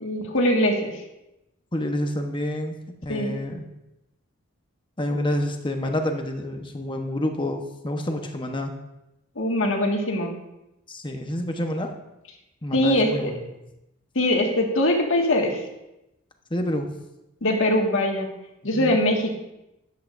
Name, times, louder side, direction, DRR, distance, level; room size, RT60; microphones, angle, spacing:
voice 1, 0.0-1.0 3.1-3.3 9.4-10.3 12.7-13.3 14.2-15.6 17.4-18.3 18.6-19.4, left 1 dB, 70° left, 1 dB, 1.8 m, -22 dB
voice 2, 1.7-2.8 3.0-3.7 5.0-8.7 10.9-11.9 12.6-13.5 16.5-16.9 18.7-19.0, left 1 dB, 25° left, 4 dB, 1.0 m, -28 dB
13.0 x 10.5 x 2.6 m, 0.92 s
head